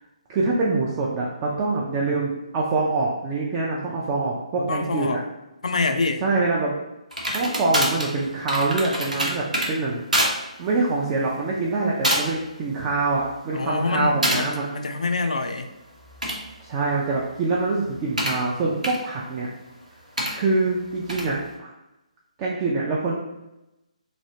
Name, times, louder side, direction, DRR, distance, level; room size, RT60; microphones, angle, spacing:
voice 1, 0.3-5.2 6.2-6.7 7.3-10.0 10.6-14.7 16.6-19.5 20.3-21.7 22.4-23.1, right 3 dB, 20° right, -4 dB, 0.4 m, -25 dB
voice 2, 4.6-5.2 5.6-6.2 13.5-15.7, left 3 dB, 65° left, 6 dB, 0.4 m, -26 dB
sound 1, 7.1-9.7 10.1-10.3 10.7-11.0 11.6-11.8 12.0-12.5 12.8-13.3 14.2-14.4 16.0-18.4 18.8-19.0 20.2-20.3 21.1-21.3, right 1 dB, 80° right, 0.8 m, -26 dB
3.0 x 2.6 x 2.7 m, 0.94 s
figure-of-eight pair, 140°, 4 cm